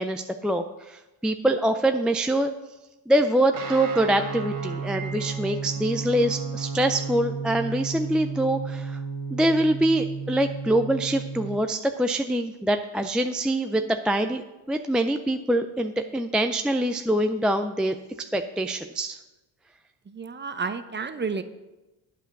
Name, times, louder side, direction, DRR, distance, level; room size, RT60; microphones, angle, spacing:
voice 1, 0.0-2.5 3.1-9.0 9.3-19.2, right 1 dB, ahead, 6 dB, 0.3 m, -24 dB
Guitar, 3.5-11.6, right 5 dB, 45° right, 1.4 m, -33 dB
Piano, 4.9-6.0, right 6 dB, 90° right, 1.0 m, -44 dB
voice 2, 20.1-21.4, right 5 dB, 25° right, 10 dB, 0.7 m, -31 dB
9.1 x 5.1 x 6.5 m, 1.1 s
supercardioid pair, 75°, 46 cm